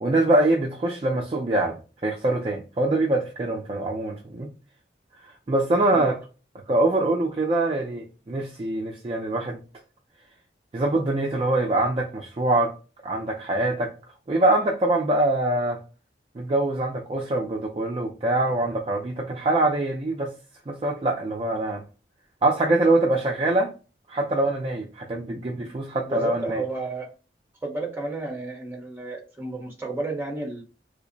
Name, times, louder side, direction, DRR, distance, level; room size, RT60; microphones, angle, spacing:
voice 1, 0.0-4.5 5.2-6.2 6.7-9.6 10.7-12.8 13.0-13.9 14.3-15.8 16.4-20.3 20.7-21.8 22.4-23.7 24.1-26.6, right 2 dB, 30° right, 0.3 m, -24 dB
voice 2, 26.1-27.1 27.6-30.6, right 3 dB, 15° right, 0.7 m, -32 dB
3.3 x 2.0 x 3.7 m
head